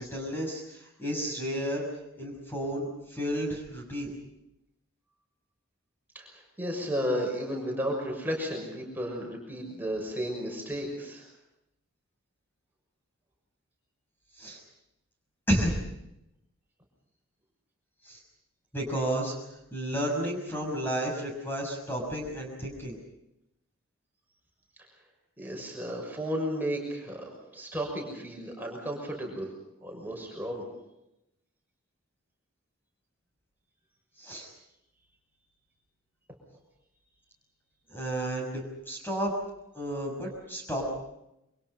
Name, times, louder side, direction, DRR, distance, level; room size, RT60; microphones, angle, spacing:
voice 1, 0.0-1.8 2.2-4.1 14.4-14.6 15.5-15.7 18.0-18.2 18.7-19.3 19.7-23.0 34.2-34.5 37.9-39.3 39.7-40.9, equal, 10° left, 0 dB, 6.2 m, -32 dB
voice 2, 6.1-11.3 25.4-29.5 29.8-30.6, equal, 10° right, 0 dB, 6.2 m, -33 dB
29.0 x 25.5 x 5.6 m, 0.86 s
head